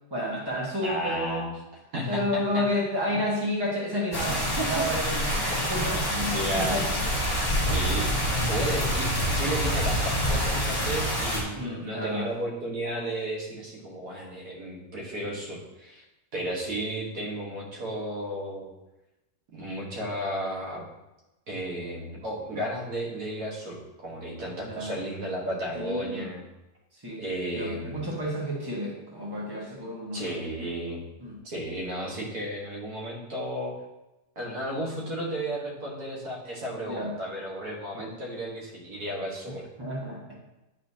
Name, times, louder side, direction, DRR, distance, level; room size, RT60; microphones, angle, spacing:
voice 1, 0.1-1.5 2.1-7.0 7.4-7.8 11.5-12.3 24.6-24.9 25.7-26.2 26.9-27.2 27.5-30.3 31.2-31.4 36.8-37.1 37.9-38.1 39.8-40.3, equal, 15° right, -4 dB, 1.4 m, -31 dB
voice 2, 0.8-1.5 1.9-2.6 3.1-3.2 4.6-4.7 5.2-5.6 6.2-6.8 7.3-16.0 16.3-18.7 19.5-20.9 21.5-26.4 27.2-28.0 30.1-31.0 31.4-33.7 34.4-39.7, right 1 dB, 65° right, -3 dB, 1.9 m, -33 dB
sound 1, 4.1-11.4, equal, 15° left, 0.9 m, -27 dB
9.1 x 4.2 x 2.8 m, 0.98 s
omnidirectional pair, 1.8 m